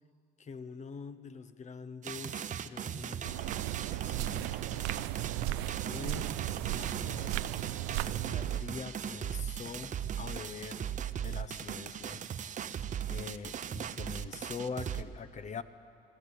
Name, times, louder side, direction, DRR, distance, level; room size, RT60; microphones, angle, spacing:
voice 1, 0.4-4.8 5.9-6.3 6.7-7.4 7.8-12.5 13.1-15.6, left 5 dB, 40° left, 13 dB, 0.9 m, -44 dB
sound 1, 2.0-15.0, right 9 dB, 40° right, 0.7 m, -38 dB
sound 2, 3.2-8.6, right 15 dB, 85° right, 0.5 m, -35 dB
21.0 x 14.5 x 8.5 m, 2.5 s
supercardioid pair, 90°, 19 cm